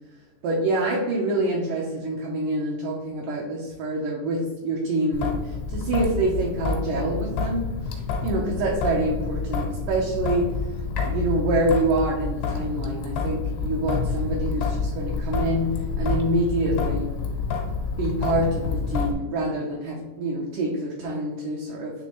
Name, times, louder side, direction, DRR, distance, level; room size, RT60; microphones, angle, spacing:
voice 1, 0.4-7.6 8.2-10.5 11.0-15.7 16.0-17.1 18.0-21.9, right 2 dB, 75° right, -3 dB, 2.0 m, -26 dB
Traffic noise roadway noise / Drip / Trickle dribble, 5.1-19.1, left 5 dB, 90° left, 3.1 m, -28 dB
9.9 x 3.4 x 3.0 m, 1.1 s
omnidirectional pair, 4.6 m